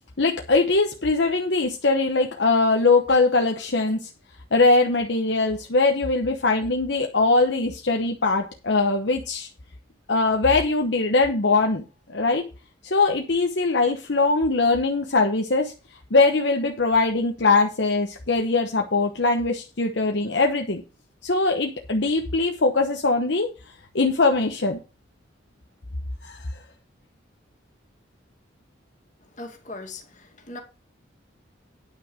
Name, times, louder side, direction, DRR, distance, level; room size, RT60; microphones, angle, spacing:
voice 1, 0.2-4.1 4.5-9.5 10.1-11.8 12.1-12.4 12.8-15.7 16.1-20.8 21.2-23.5 23.9-24.8 26.2-26.5, left 3 dB, 60° left, 1.0 m, -21 dB
voice 2, 29.4-30.0 30.5-30.6, left 2 dB, 40° left, 2.3 m, -37 dB
9.6 x 5.7 x 6.3 m
head